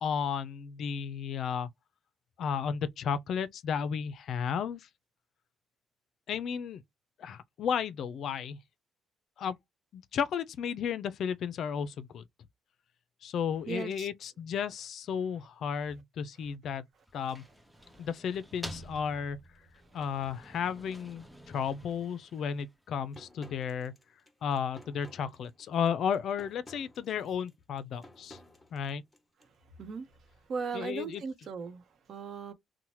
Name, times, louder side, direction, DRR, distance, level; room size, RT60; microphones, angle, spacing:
voice 1, 0.0-1.7 2.4-4.9 6.3-6.8 7.2-8.6 9.4-9.6 9.9-12.2 13.2-16.8 17.1-17.4 18.0-19.4 19.9-23.9 24.4-28.4 28.7-29.0 30.7-31.2, left 7 dB, 70° left, 0.3 m, -33 dB
voice 2, 13.7-14.1 29.8-30.1 30.5-32.5, right 5 dB, 60° right, 0.7 m, -37 dB
sound 1, 16.9-23.0, equal, 5° right, 0.6 m, -49 dB
sound 2, 23.1-29.5, left 1 dB, 15° left, 0.9 m, -55 dB
2.8 x 2.1 x 3.0 m
cardioid pair, 90°, 0 cm